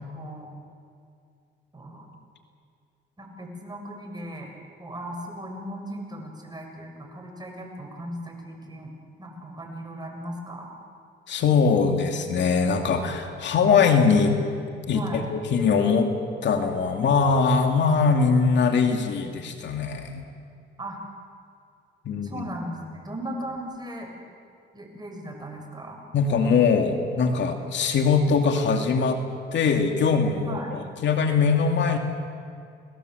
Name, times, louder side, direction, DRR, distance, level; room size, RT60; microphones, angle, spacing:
voice 1, 0.1-0.5 1.7-2.1 3.2-4.5 4.8-8.9 9.2-10.7 14.9-15.2 20.8-21.0 22.2-24.1 24.7-26.0 30.4-30.7, right 1 dB, 20° right, 2 dB, 6.9 m, -37 dB
voice 2, 11.3-14.4 14.9-16.2 16.4-20.2 22.1-22.4 26.1-29.2 29.5-32.0, left 5 dB, 65° left, 4 dB, 2.5 m, -22 dB
29.5 x 19.5 x 8.1 m, 2.3 s
cardioid pair, 90°, 20 cm